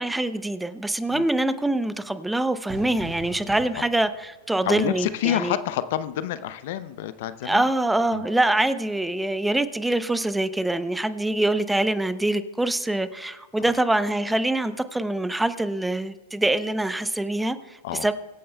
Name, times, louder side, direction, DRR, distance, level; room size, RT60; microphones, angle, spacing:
voice 1, 0.0-4.1 4.5-5.5 7.4-18.1, right 1 dB, 5° right, 0.6 m, -24 dB
Fire / Fireworks, 2.7-8.2, right 2 dB, 25° right, 3.6 m, -46 dB
voice 2, 4.6-7.7 8.1-8.2 13.7-13.8 17.8-18.1, left 12 dB, 60° left, 0.5 m, -28 dB
24.0 x 8.5 x 2.2 m
hypercardioid pair, 100°, 0 cm